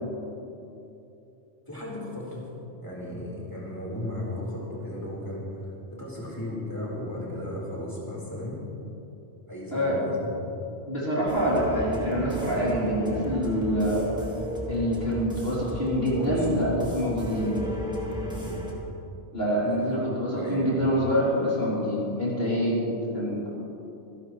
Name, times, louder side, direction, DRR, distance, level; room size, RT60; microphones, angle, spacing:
voice 1, 1.7-2.5 2.8-8.6 9.5-10.3 16.1-16.9 17.3-17.6 18.2-18.7 19.6-19.9 20.3-20.7, left 1 dB, 15° left, -6 dB, 4.3 m, -35 dB
voice 2, 10.9-14.0 14.7-17.6 19.3-23.5, equal, 55° left, -7 dB, 3.7 m, -26 dB
sound 1, 11.3-18.7, equal, 5° right, 1.8 m, -33 dB
27.0 x 11.5 x 3.2 m, 2.9 s
omnidirectional pair, 1.2 m